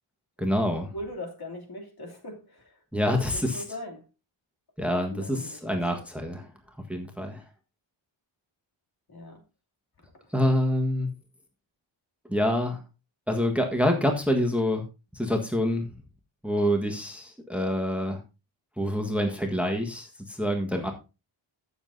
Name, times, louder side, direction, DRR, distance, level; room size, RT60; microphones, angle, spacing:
voice 1, 0.4-0.9 2.9-3.6 4.8-6.5 6.9-7.4 10.3-11.1 12.3-12.8 13.3-14.8 15.1-15.9 16.4-18.2 18.8-20.9, equal, 5° right, 1.5 m, -26 dB
voice 2, 0.9-2.8 3.1-4.0 4.9-6.1 9.1-9.4 10.3-10.4 20.7-20.9, left 1 dB, 50° left, 2.9 m, -41 dB
15.5 x 7.3 x 2.7 m
wide cardioid pair, 125°, 49 cm